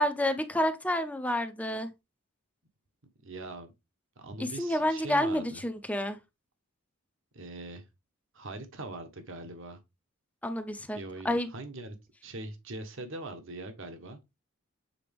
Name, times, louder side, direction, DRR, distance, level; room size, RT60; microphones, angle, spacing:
voice 1, 0.0-1.9 4.4-6.2 10.4-11.0 11.2-11.5, left 1 dB, 5° left, 0.6 m, -29 dB
voice 2, 3.2-3.7 4.2-5.6 7.3-7.8 8.3-9.8 10.9-11.9 12.2-14.2, right 2 dB, 65° right, 1.2 m, -41 dB
7.7 x 4.1 x 3.4 m
head